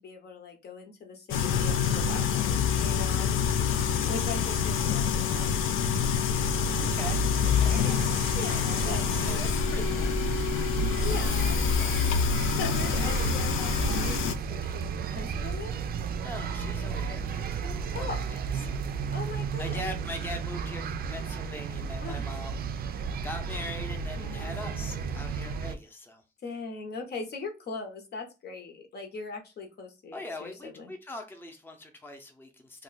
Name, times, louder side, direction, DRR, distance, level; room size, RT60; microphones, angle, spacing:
voice 1, 0.0-3.8 4.1-5.6 6.5-7.0 8.3-9.1 11.0-11.9 12.5-13.7 14.0-15.8 17.9-18.3 19.1-19.8 22.0-22.2 24.2-24.9 26.4-30.9, left 4 dB, 55° left, 0.9 m, -40 dB
sound 1, 1.3-14.3, left 6 dB, 85° left, 0.5 m, -26 dB
voice 2, 6.8-7.9 8.8-10.2 11.7-12.2 16.2-18.8 19.6-26.2 30.1-32.8, left 1 dB, 10° left, 0.6 m, -42 dB
sound 2, 7.3-25.7, right 6 dB, 50° right, 0.4 m, -34 dB
2.3 x 2.2 x 3.9 m
cardioid pair, 90°, 20 cm